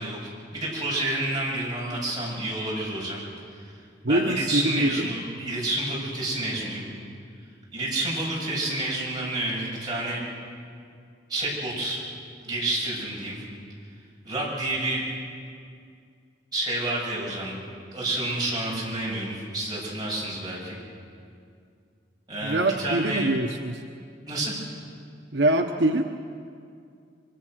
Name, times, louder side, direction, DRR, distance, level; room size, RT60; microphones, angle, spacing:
voice 1, 0.0-3.2 3.5-3.6 4.1-6.8 7.7-10.2 11.3-12.0 12.4-13.4 14.2-15.1 16.5-17.6 17.9-20.8 22.3-23.3 24.3-24.6, right 2 dB, 20° right, -5 dB, 7.5 m, -29 dB
voice 2, 4.0-5.1 22.4-23.8 25.3-26.0, right 1 dB, 70° right, 4 dB, 1.0 m, -24 dB
25.5 x 24.0 x 6.4 m, 2.3 s
head